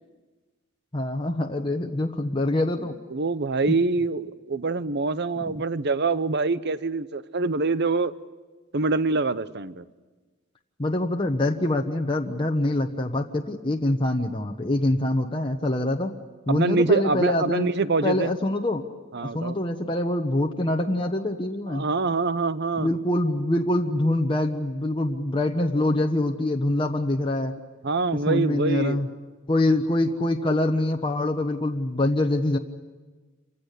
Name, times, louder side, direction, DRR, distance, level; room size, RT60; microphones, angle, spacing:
voice 1, 0.9-2.9 3.7-3.8 5.5-5.6 10.8-16.1 16.5-17.7 18.0-18.8 19.2-21.9 22.8-27.5 28.1-29.1 29.5-32.6, left 1 dB, 25° left, 2 dB, 1.1 m, -25 dB
voice 2, 3.1-8.1 8.7-9.8 16.5-18.3 19.1-19.5 21.7-22.9 27.8-29.0, right 3 dB, 50° right, 15 dB, 0.8 m, -25 dB
28.0 x 16.0 x 10.0 m, 1.3 s
head